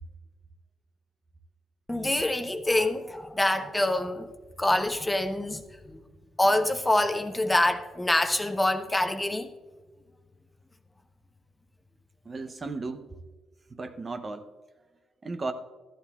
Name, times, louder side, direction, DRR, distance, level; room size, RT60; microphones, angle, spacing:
voice 1, 1.9-4.3 4.6-6.0 6.4-9.5, left 1 dB, 10° left, 0.9 m, -26 dB
voice 2, 12.3-13.1 13.7-14.5 15.2-15.5, right 3 dB, 30° right, 0.7 m, -35 dB
13.5 x 11.5 x 2.4 m
cardioid pair, 90°, 0 cm